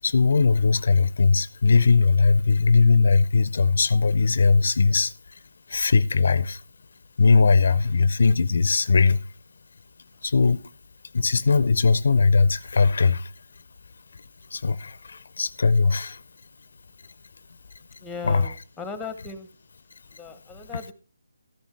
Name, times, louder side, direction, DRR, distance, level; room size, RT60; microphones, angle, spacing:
voice 1, 0.0-5.4 5.7-6.6 7.2-9.3 10.2-10.6 11.1-13.3 14.1-14.2 14.5-16.2 18.2-18.5, left 4 dB, 65° left, 0.4 m, -20 dB
voice 2, 18.0-19.5 20.1-20.9, left 5 dB, 5° left, 0.8 m, -37 dB
13.5 x 10.5 x 3.2 m
figure-of-eight pair, 155°, 0 cm